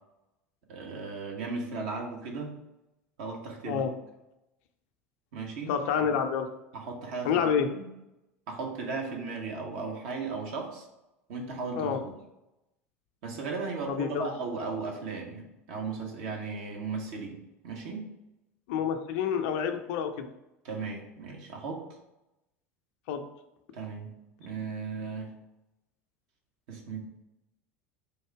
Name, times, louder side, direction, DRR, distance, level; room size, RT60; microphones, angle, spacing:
voice 1, 0.7-2.5 3.2-3.9 5.3-5.7 6.1-6.3 6.7-7.9 8.5-10.9 11.3-12.1 13.2-18.1 20.6-21.8 23.7-24.1 24.4-25.3 26.7-27.0, right 4 dB, 60° right, 1 dB, 1.0 m, -36 dB
voice 2, 5.7-6.5 7.2-7.7 11.7-12.0 13.9-14.3 18.7-20.3 23.1-23.2, left 7 dB, 60° left, 7 dB, 0.5 m, -28 dB
3.4 x 2.7 x 4.5 m, 0.92 s
figure-of-eight pair, 70°, 8 cm